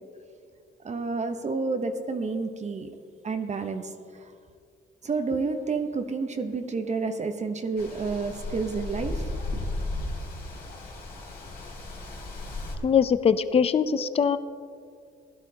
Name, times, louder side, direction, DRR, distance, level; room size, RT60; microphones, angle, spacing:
voice 1, 0.8-2.9 3.2-4.3 5.0-9.3, right 4 dB, 35° right, 7 dB, 0.8 m, -30 dB
sound 1, 7.8-12.8, left 2 dB, 50° left, 2.8 m, -35 dB
voice 2, 12.8-14.4, left 7 dB, 30° left, 13 dB, 0.4 m, -22 dB
16.5 x 11.5 x 2.8 m, 2.3 s
cardioid pair, 90°, 20 cm